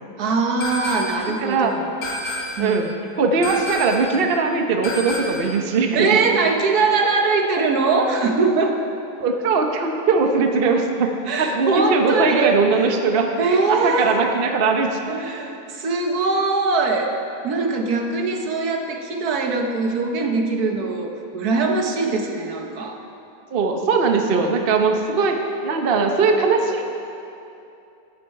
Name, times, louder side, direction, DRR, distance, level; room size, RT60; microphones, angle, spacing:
voice 1, 0.2-1.8 2.6-2.8 5.9-8.8 11.3-12.9 13.4-14.2 15.1-17.1 17.4-23.0, right 3 dB, 70° right, 3 dB, 1.5 m, -21 dB
sound 1, 0.6-1.3 2.0-2.8 3.4-4.2 4.8-5.6, left 1 dB, 65° left, 1.8 m, -30 dB
voice 2, 1.3-1.8 2.6-2.9 3.2-6.2 9.2-11.1 11.4-13.3 13.7-15.0 23.5-25.4 25.6-26.8, right 4 dB, 45° right, 3 dB, 0.9 m, -20 dB
14.0 x 9.4 x 4.6 m, 2.7 s
omnidirectional pair, 1.7 m